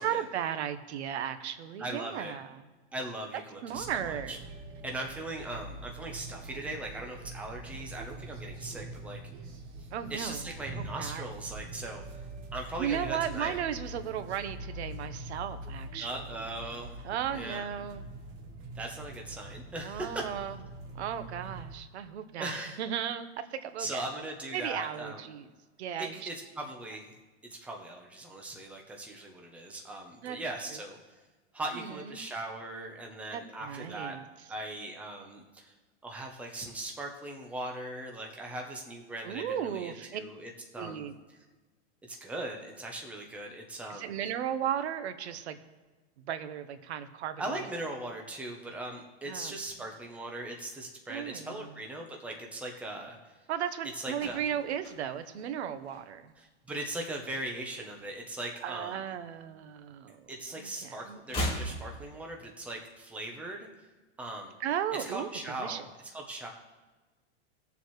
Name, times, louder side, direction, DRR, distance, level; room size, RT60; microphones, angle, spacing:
voice 1, 0.0-2.5 3.6-4.4 9.9-10.4 11.0-11.3 12.8-16.1 17.0-18.0 19.8-20.6 20.9-22.5 22.8-24.1 24.5-25.5 25.8-26.3 30.2-30.4 31.7-32.2 33.3-34.2 39.2-40.2 40.8-41.1 43.9-45.6 46.3-47.6 49.2-49.5 51.1-51.6 53.5-56.3 58.6-61.2 64.6-65.3 65.6-65.8, right 9 dB, 75° right, 11 dB, 1.0 m, -35 dB
voice 2, 1.8-2.3 2.9-4.4 4.8-9.2 10.1-12.2 12.5-13.5 16.0-17.0 17.3-17.6 18.7-20.3 22.4-22.8 23.8-25.2 26.0-27.1 27.4-31.2 31.5-34.2 34.5-35.7 36.0-41.0 42.0-44.1 47.4-53.4 54.0-54.4 56.4-59.0 60.3-63.7 64.2-64.5 65.1-65.9 66.1-66.5, right 1 dB, 5° right, 1 dB, 0.8 m, -39 dB
sound 1, 3.7-21.8, right 2 dB, 35° right, 1.2 m, -44 dB
sound 2, 53.8-56.5 56.7-57.0 57.3-58.8 59.1-60.4 60.7-62.8 63.0-63.1, equal, 15° left, 2.6 m, -39 dB
19.0 x 7.1 x 3.2 m, 1.3 s
supercardioid pair, 160°, 34 cm